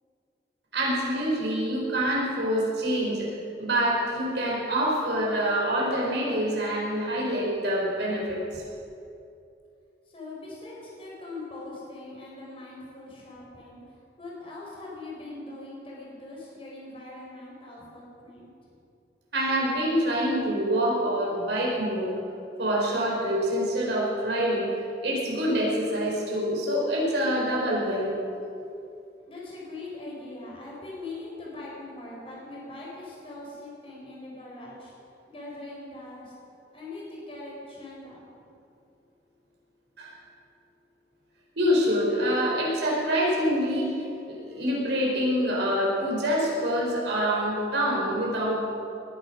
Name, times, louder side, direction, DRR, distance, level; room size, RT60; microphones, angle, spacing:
voice 1, 0.7-3.3 3.6-8.6 19.3-22.2 22.6-24.7 25.0-28.1 40.0-40.1 41.5-48.6, equal, 80° right, -3 dB, 4.8 m, -26 dB
voice 2, 10.1-13.8 14.2-18.5 29.2-34.9 35.3-36.3 36.7-38.2, left 2 dB, 30° left, -4 dB, 4.6 m, -41 dB
20.0 x 10.5 x 6.3 m, 2.6 s
head